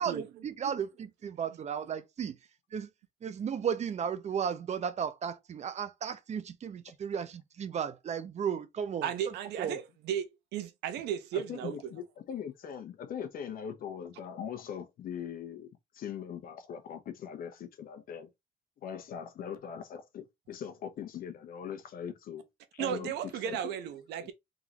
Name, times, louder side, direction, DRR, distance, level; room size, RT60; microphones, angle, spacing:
voice 1, 0.0-2.4 2.7-2.9 3.2-9.8, right 7 dB, 40° right, 0.8 m, -35 dB
voice 2, 9.0-11.8 22.8-24.3, right 9 dB, 85° right, 1.0 m, -35 dB
voice 3, 11.3-15.7 15.9-18.3 18.8-22.4 22.7-23.1 23.4-23.7 24.2-24.3, left 8 dB, 60° left, 1.2 m, -41 dB
3.9 x 3.8 x 3.0 m
cardioid pair, 110°, 17 cm